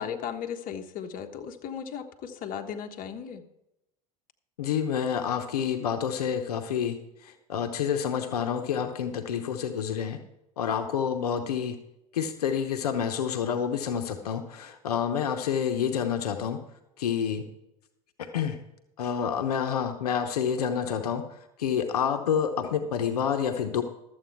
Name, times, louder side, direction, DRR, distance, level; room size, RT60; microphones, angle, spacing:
voice 1, 0.0-3.4, left 8 dB, 45° left, 5 dB, 1.2 m, -36 dB
voice 2, 4.6-10.2 10.6-11.8 12.1-16.6 17.0-17.4 18.2-18.6 19.0-21.2 21.6-23.8, left 8 dB, 80° left, 7 dB, 0.9 m, -28 dB
12.5 x 8.1 x 4.6 m, 0.87 s
hypercardioid pair, 80°, 19 cm